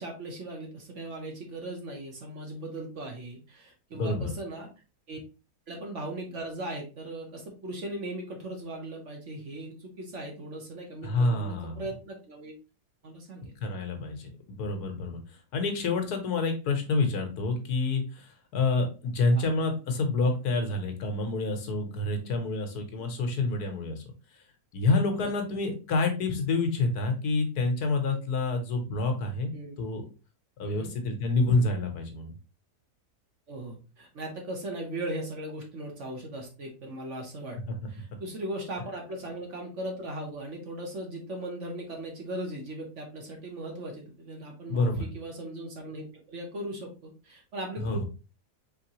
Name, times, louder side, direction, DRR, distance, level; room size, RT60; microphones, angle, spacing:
voice 1, 0.0-4.7 5.1-5.2 5.7-12.5 13.0-13.6 19.4-19.5 25.2-25.3 28.1-28.2 29.5-29.8 30.6-30.9 33.5-37.6 37.9-48.0, right 1 dB, 50° right, 1 dB, 1.2 m, -38 dB
voice 2, 3.9-4.3 11.0-11.9 13.6-15.2 15.5-24.0 24.7-29.5 29.8-30.0 30.6-32.3 37.7-37.8 44.7-45.1 47.8-48.0, left 3 dB, 70° left, 4 dB, 1.4 m, -28 dB
4.6 x 3.4 x 2.9 m, 0.32 s
omnidirectional pair, 1.7 m